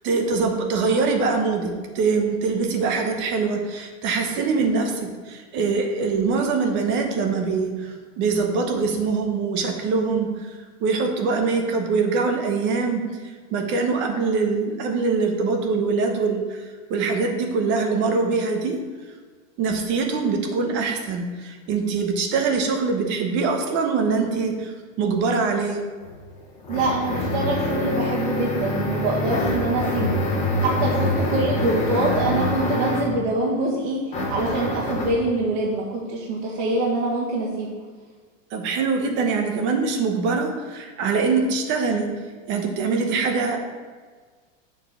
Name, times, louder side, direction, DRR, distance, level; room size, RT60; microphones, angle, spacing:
voice 1, 0.0-13.0 13.5-18.8 19.6-25.8 38.5-42.1 42.5-43.6, right 4 dB, 30° right, 4 dB, 0.8 m, -23 dB
sound 1, 26.0-33.2 34.1-35.2, left 1 dB, 20° left, 1.3 m, -25 dB
voice 2, 26.7-30.2 30.6-37.7, right 2 dB, 55° right, -5 dB, 1.7 m, -25 dB
7.1 x 4.5 x 5.6 m, 1.5 s
supercardioid pair, 155°, 39 cm